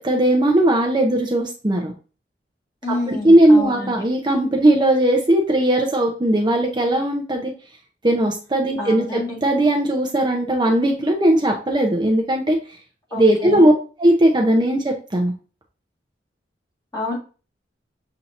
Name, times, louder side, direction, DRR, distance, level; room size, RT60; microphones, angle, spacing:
voice 1, 0.0-1.9 3.1-7.5 8.0-12.6 13.1-13.7 14.0-15.3, right 1 dB, 25° right, 2 dB, 0.6 m, -18 dB
voice 2, 2.8-3.9 8.8-9.4 13.1-13.7 16.9-17.2, left 2 dB, 20° left, -5 dB, 1.8 m, -28 dB
7.0 x 2.8 x 2.6 m, 0.35 s
head